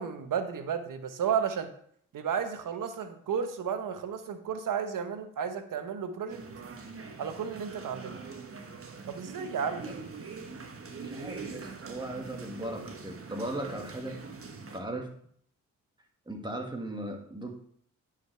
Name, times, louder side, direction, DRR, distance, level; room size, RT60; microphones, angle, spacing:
voice 1, 0.0-1.7 2.1-6.4 7.2-8.2 9.1-9.9, right 7 dB, 65° right, 9 dB, 1.1 m, -33 dB
sound 1, 6.3-14.8, right 4 dB, 40° right, 1.2 m, -43 dB
voice 2, 11.0-14.2 14.6-15.1 16.3-17.6, right 1 dB, 15° right, 2 dB, 2.1 m, -38 dB
9.7 x 5.1 x 3.4 m, 0.62 s
supercardioid pair, 50°, 35 cm